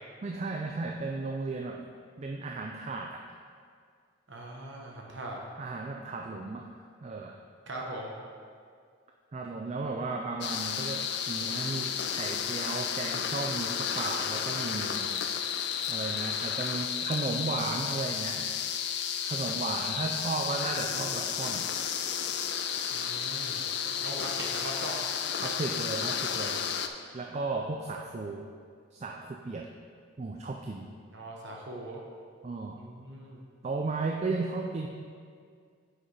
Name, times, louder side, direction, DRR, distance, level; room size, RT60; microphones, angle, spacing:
voice 1, 0.2-1.9 2.2-3.4 5.6-6.7 7.0-7.4 9.3-15.2 15.9-18.6 19.2-21.7 25.4-26.6 27.1-28.5 28.9-29.7 30.2-30.9 32.4-32.8 33.6-34.9, right 3 dB, 30° right, 2 dB, 0.3 m, -35 dB
voice 2, 4.3-5.4 7.7-8.1 22.9-23.6 24.0-25.0 31.1-32.0 32.8-33.4, right 1 dB, 60° right, -1 dB, 0.9 m, -40 dB
sound 1, 10.4-26.9, left 8 dB, 55° left, 0.4 m, -32 dB
9.2 x 6.3 x 3.3 m, 2.1 s
head